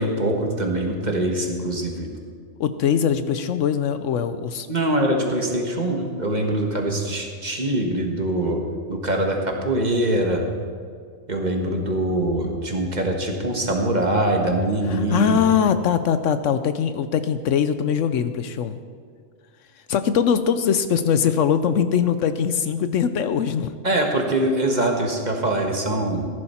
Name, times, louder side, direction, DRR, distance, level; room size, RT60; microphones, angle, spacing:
voice 1, 0.0-2.1 4.7-8.6 8.9-10.4 11.3-15.4 23.8-26.3, right 1 dB, 35° right, 2 dB, 1.4 m, -23 dB
voice 2, 2.6-4.7 14.9-18.8 19.9-23.7, left 8 dB, 70° left, 11 dB, 0.9 m, -21 dB
14.0 x 11.0 x 4.3 m, 2.1 s
omnidirectional pair, 1.4 m